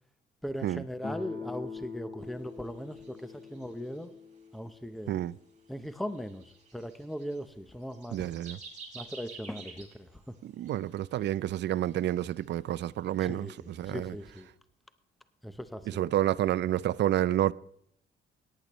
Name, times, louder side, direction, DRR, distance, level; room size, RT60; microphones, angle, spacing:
voice 1, 0.4-4.1 4.5-5.2 5.7-8.3 8.9-10.3 13.2-14.5 15.4-16.0, equal, ahead, 0.7 m, -39 dB
Guitar, 1.0-5.8, left 4 dB, 25° left, 1.4 m, -44 dB
sound 1, 2.6-4.3 5.0-5.3 5.8-7.4 7.8-14.4, right 5 dB, 40° right, 5.4 m, -51 dB
voice 2, 8.1-8.6 10.4-14.2 15.9-17.5, right 13 dB, 60° right, 0.4 m, -29 dB
18.0 x 10.0 x 3.1 m
cardioid pair, 90°, 20 cm